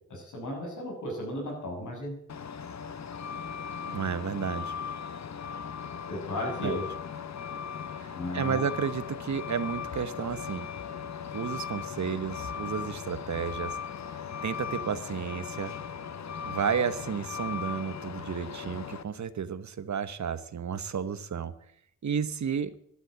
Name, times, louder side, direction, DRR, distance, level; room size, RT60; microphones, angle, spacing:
voice 1, 0.1-2.1 6.1-6.8 8.1-8.6, left 1 dB, 80° left, 0 dB, 7.2 m, -35 dB
Truck, 2.3-19.0, left 7 dB, 65° left, 1.1 m, -38 dB
voice 2, 3.9-4.8 6.6-6.8 7.9-10.7 11.3-13.8 14.4-15.7 16.4-21.5 22.0-22.7, right 7 dB, 70° right, 14 dB, 1.1 m, -32 dB
12.5 x 12.0 x 8.2 m, 0.69 s
wide cardioid pair, 80°, 30 cm